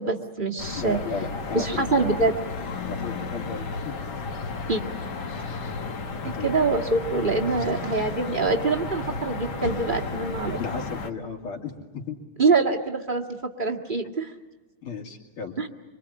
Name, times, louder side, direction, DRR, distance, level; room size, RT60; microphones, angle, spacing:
voice 1, 0.0-1.0 1.5-2.3 4.7-4.8 6.4-10.6 12.4-14.3 15.6-15.7, right 3 dB, 25° right, 1 dB, 1.8 m, -24 dB
sound 1, 0.6-11.1, left 4 dB, 55° left, 2.1 m, -33 dB
voice 2, 0.7-2.1 2.8-4.0 6.2-6.6 7.5-7.7 10.6-12.2 14.8-15.6, left 4 dB, 75° left, 3 dB, 3.5 m, -34 dB
25.5 x 25.5 x 8.7 m, 1.1 s
omnidirectional pair, 2.3 m